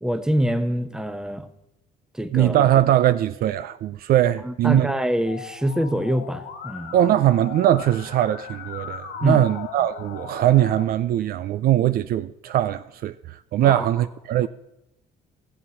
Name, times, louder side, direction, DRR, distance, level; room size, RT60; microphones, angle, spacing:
voice 1, 0.0-1.5 2.1-2.7 4.4-7.0 9.2-9.4 13.6-13.9, equal, 5° right, 0.9 m, -25 dB
voice 2, 2.3-4.9 6.9-14.5, right 12 dB, 60° right, 0.4 m, -21 dB
Musical instrument, 5.3-10.8, left 8 dB, 90° left, 1.7 m, -38 dB
15.0 x 7.9 x 5.6 m
cardioid pair, 110°, 17 cm